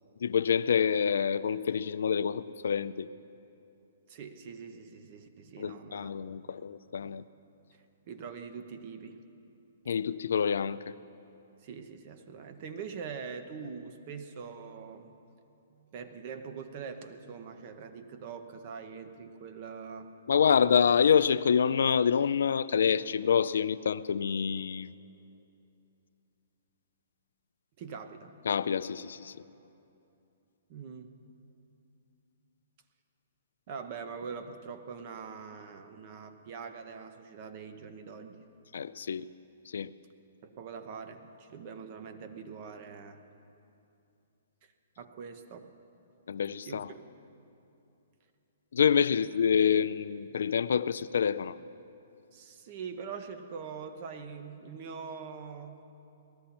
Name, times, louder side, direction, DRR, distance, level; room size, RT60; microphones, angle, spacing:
voice 1, 0.2-3.1 5.6-7.2 9.9-10.9 20.3-24.9 28.5-29.3 38.7-39.3 39.7-39.9 46.3-46.9 48.7-51.6, left 7 dB, 75° left, 15 dB, 0.3 m, -27 dB
voice 2, 4.1-6.6 7.0-7.3 8.0-9.2 11.6-15.1 15.7-20.1 27.8-28.4 30.7-31.2 33.7-38.4 40.4-43.2 44.6-44.7 45.0-45.7 46.6-47.2 52.3-55.8, right 6 dB, 45° right, 8 dB, 0.9 m, -43 dB
18.5 x 13.0 x 4.3 m, 2.7 s
hypercardioid pair, 140°, 0 cm